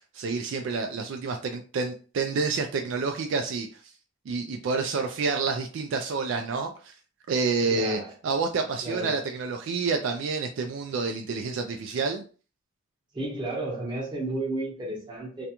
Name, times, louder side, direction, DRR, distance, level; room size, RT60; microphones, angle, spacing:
voice 1, 0.1-3.7 4.3-6.9 7.3-12.2, right 4 dB, 65° right, 4 dB, 0.3 m, -28 dB
voice 2, 7.6-8.1 8.8-9.2 13.1-15.5, right 2 dB, 20° right, -3 dB, 0.9 m, -32 dB
2.5 x 2.2 x 2.8 m, 0.38 s
head